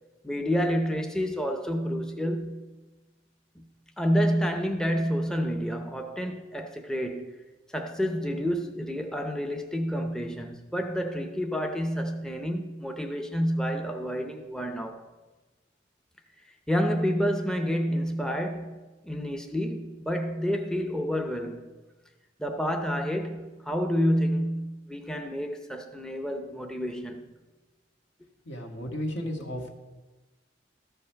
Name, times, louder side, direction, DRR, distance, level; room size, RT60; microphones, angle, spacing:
voice 1, 0.2-2.6 3.6-3.7 4.0-7.3 7.7-15.0 16.7-18.8 19.0-21.6 22.4-27.3, equal, 5° left, 0.6 m, -29 dB
voice 2, 28.5-29.7, left 1 dB, 80° left, 1.7 m, -33 dB
13.0 x 5.5 x 5.7 m
head